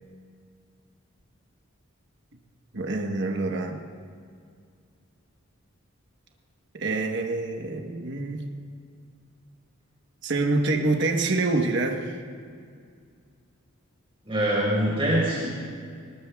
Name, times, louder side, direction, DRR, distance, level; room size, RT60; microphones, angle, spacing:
voice 1, 2.7-3.8 6.7-8.4 10.2-12.2, right 2 dB, 60° right, 3 dB, 1.1 m, -26 dB
voice 2, 14.3-15.5, right 1 dB, 25° right, -5 dB, 3.7 m, -24 dB
20.5 x 19.5 x 2.3 m, 2.2 s
head